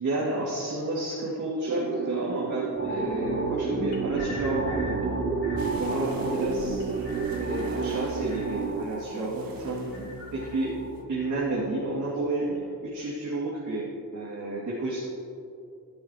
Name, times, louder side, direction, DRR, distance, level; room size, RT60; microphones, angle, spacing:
voice 1, 0.0-5.1 5.8-6.8 7.3-13.8 14.1-15.1, right 2 dB, 60° right, -8 dB, 2.6 m, -31 dB
sound 1, 1.7-8.8, right 7 dB, 40° right, 0.4 m, -31 dB
sound 2, 2.8-12.1 12.4-12.6, equal, 35° left, 3.0 m, -35 dB
sound 3, 5.6-11.0, right 3 dB, 80° right, 1.4 m, -49 dB
14.5 x 12.5 x 3.0 m, 2.7 s
wide cardioid pair, 135°, 34 cm